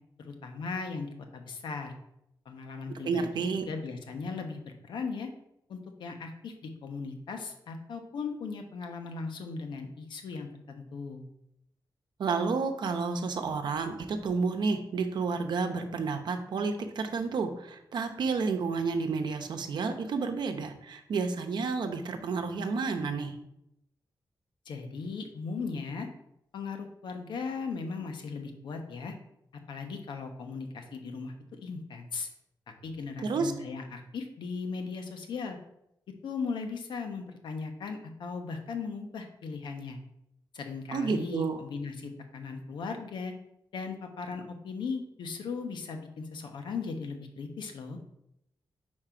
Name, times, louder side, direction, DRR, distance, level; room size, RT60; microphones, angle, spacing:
voice 1, 0.2-1.9 2.4-5.3 5.7-11.2 24.7-26.1 26.5-29.1 29.7-32.3 32.7-35.6 36.2-40.0 40.5-43.3 43.7-48.0, left 4 dB, 90° left, 5 dB, 1.0 m, -38 dB
voice 2, 2.9-3.7 12.2-23.3 33.2-33.5 40.9-41.6, right 4 dB, 75° right, 6 dB, 0.8 m, -30 dB
5.0 x 4.3 x 5.8 m, 0.80 s
wide cardioid pair, 135°, 8 cm